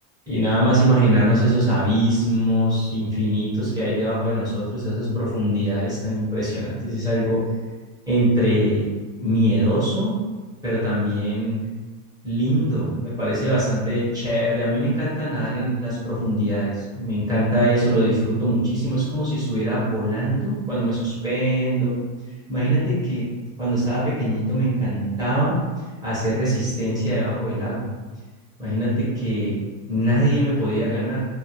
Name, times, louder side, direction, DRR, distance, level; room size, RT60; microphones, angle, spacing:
voice 1, 0.3-7.4 8.1-8.9 9.2-10.1 10.6-11.6 12.2-22.0 22.5-23.3 23.6-25.6 26.0-27.9 28.6-29.6 29.9-31.2, right 1 dB, 10° right, -11 dB, 0.5 m, -22 dB
2.5 x 2.0 x 2.8 m, 1.3 s
supercardioid pair, 160°, 46 cm